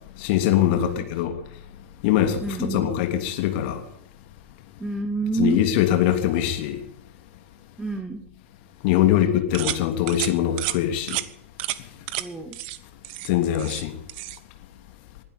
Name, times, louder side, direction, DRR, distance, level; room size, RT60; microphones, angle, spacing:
voice 1, 0.2-1.4 2.0-3.8 5.4-6.8 8.8-11.2 13.2-14.0, left 11 dB, 50° left, 3.0 m, -22 dB
voice 2, 2.4-2.9 4.8-5.7 7.8-8.2 9.0-9.3 12.2-12.6, right 3 dB, 10° right, 2.1 m, -28 dB
sound 1, 9.5-9.8 10.1-10.3 10.6-10.8 11.1-11.3 11.6-11.8 12.1-12.2 12.5-12.8 13.0-13.8 14.1-14.4, right 17 dB, 50° right, 1.1 m, -30 dB
20.5 x 12.5 x 5.4 m
figure-of-eight pair, 100°, 7 cm